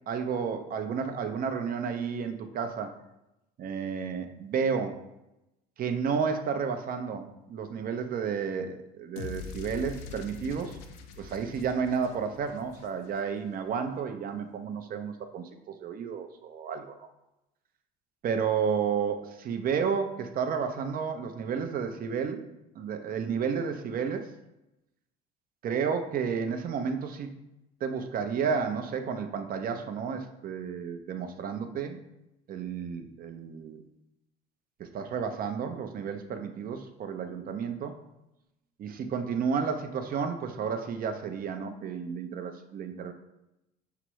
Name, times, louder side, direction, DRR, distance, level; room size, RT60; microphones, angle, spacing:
voice 1, 0.1-2.9 3.6-5.0 5.8-10.8 11.2-17.1 18.2-22.4 22.8-24.3 25.6-27.4 27.8-32.0 32.5-33.8 34.8-38.0 38.8-43.1, right 6 dB, 45° right, 7 dB, 0.6 m, -31 dB
sound 1, 9.2-13.4, left 5 dB, 80° left, 0.5 m, -43 dB
5.8 x 2.0 x 4.6 m, 0.90 s
supercardioid pair, 80°, 20 cm